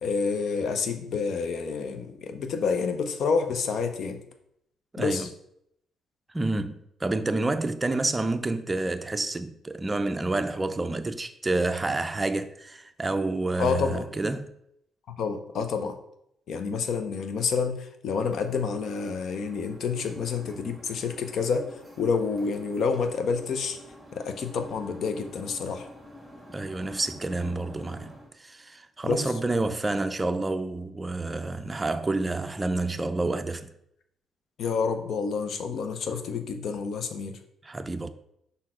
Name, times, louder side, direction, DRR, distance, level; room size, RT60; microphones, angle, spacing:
voice 1, 0.0-4.2 5.0-5.3 13.6-14.0 15.1-16.0 16.5-21.7 22.0-23.8 24.1-25.9 29.0-29.2 34.6-37.3, left 5 dB, 65° left, 0.7 m, -28 dB
voice 2, 4.9-5.3 6.3-14.5 26.5-28.1 28.4-33.7 37.6-38.1, right 2 dB, 20° right, 0.5 m, -29 dB
sound 1, 18.1-28.3, left 1 dB, ahead, 1.7 m, -48 dB
5.4 x 4.2 x 4.3 m
cardioid pair, 90°, 0 cm